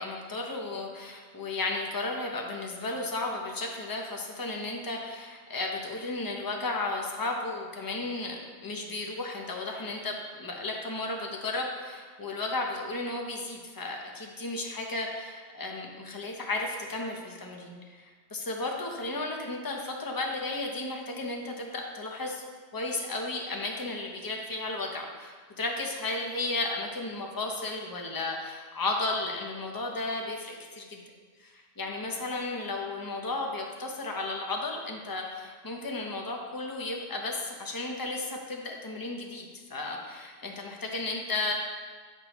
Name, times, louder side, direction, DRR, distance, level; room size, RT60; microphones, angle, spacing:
voice 1, 0.0-22.4 22.7-31.0 31.4-41.5, left 2 dB, 20° left, 1 dB, 0.7 m, -34 dB
8.0 x 6.1 x 3.0 m, 1.5 s
omnidirectional pair, 1.2 m